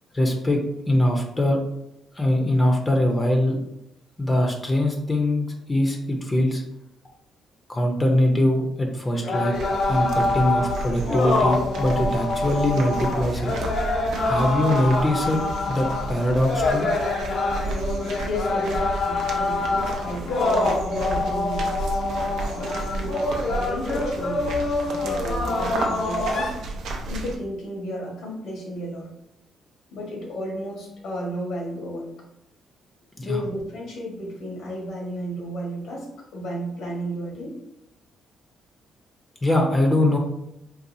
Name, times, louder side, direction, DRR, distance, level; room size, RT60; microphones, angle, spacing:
voice 1, 0.1-0.6 0.9-1.6 2.1-3.6 4.2-6.6 7.7-9.5 9.9-13.5 14.2-16.9 33.2-33.4 39.4-40.2, left 1 dB, 20° left, 2 dB, 0.6 m, -22 dB
sound 1, 9.1-26.5, left 2 dB, 60° left, 0.6 m, -26 dB
sound 2, 9.5-27.4, right 2 dB, 75° right, 0.5 m, -33 dB
voice 2, 18.2-22.0 22.5-24.5 24.8-26.6 27.1-29.1 29.9-32.1 33.2-37.6, equal, 80° left, -2 dB, 1.4 m, -33 dB
4.0 x 2.3 x 2.7 m, 0.85 s
cardioid pair, 90°, 0 cm